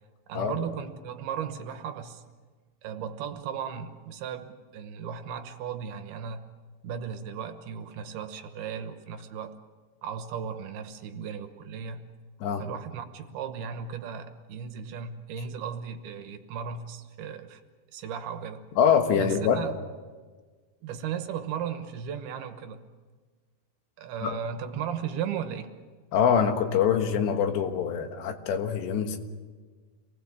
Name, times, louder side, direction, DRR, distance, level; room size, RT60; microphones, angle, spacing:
voice 1, 0.3-2.2 2.8-6.5 6.8-9.6 10.0-12.0 12.6-17.6 17.9-18.6 19.1-19.8 20.8-22.8 24.0-25.7, right 7 dB, 70° right, 8 dB, 3.0 m, -36 dB
voice 2, 18.8-19.6 24.2-24.4 26.1-29.2, left 7 dB, 80° left, 6 dB, 3.6 m, -24 dB
27.5 x 19.5 x 7.4 m, 1.4 s
omnidirectional pair, 4.9 m